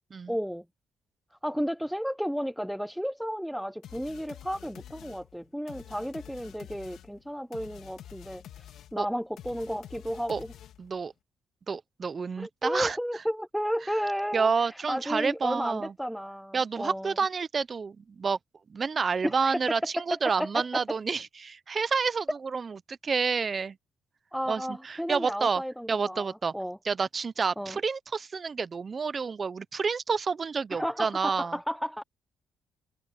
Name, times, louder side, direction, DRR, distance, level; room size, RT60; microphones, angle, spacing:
voice 1, 0.3-0.6 1.4-10.5 12.4-17.2 19.2-19.6 20.0-20.8 24.3-26.8 27.6-27.8 30.7-32.0, equal, ahead, 0.7 m, -33 dB
sound 1, 3.8-11.0, left 11 dB, 75° left, 2.3 m, -48 dB
voice 2, 10.8-11.1 11.7-13.0 14.3-15.9 16.5-18.4 18.7-23.8 24.5-25.6 25.9-26.5 26.8-31.6, right 5 dB, 40° right, 0.6 m, -29 dB
cardioid pair, 90°, 0 cm